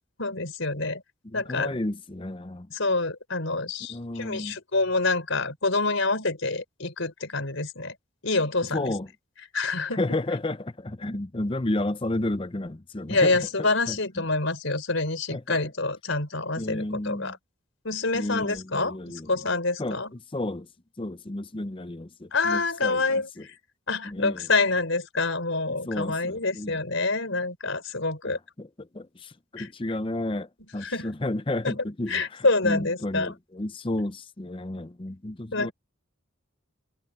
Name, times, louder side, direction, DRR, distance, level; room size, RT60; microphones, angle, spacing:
voice 1, 0.2-1.0 1.3-1.8 2.7-7.9 8.2-8.9 9.5-10.1 13.1-17.4 17.8-19.0 19.3-20.1 22.3-23.5 23.9-28.4 29.6-29.7 30.8-31.1 31.6-33.3 35.5-35.7, left 3 dB, 70° left, 4.1 m, -27 dB
voice 2, 1.2-2.7 3.9-4.6 8.7-9.1 9.9-14.0 15.3-15.6 16.6-17.3 18.1-19.3 19.8-20.0 20.3-20.7 21.0-23.4 24.0-24.5 25.7-26.8 28.2-28.7 28.9-30.5 30.7-32.2 32.6-35.7, left 1 dB, 25° left, 0.6 m, -32 dB
head